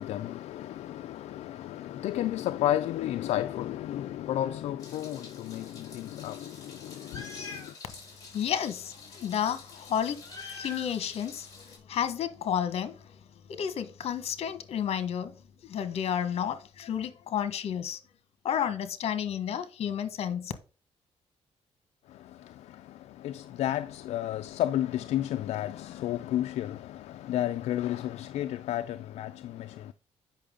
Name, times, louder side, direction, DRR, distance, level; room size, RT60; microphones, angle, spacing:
voice 1, 0.0-7.6 23.2-29.7, left 12 dB, 80° left, 0.4 m, -32 dB
Meow, 4.8-11.8, left 4 dB, 30° left, 4.4 m, -46 dB
voice 2, 8.3-10.2 10.6-13.1 13.5-15.3 15.6-18.0 18.4-20.5, left 9 dB, 65° left, 1.4 m, -31 dB
8.4 x 5.7 x 3.8 m
cardioid pair, 120°, 11 cm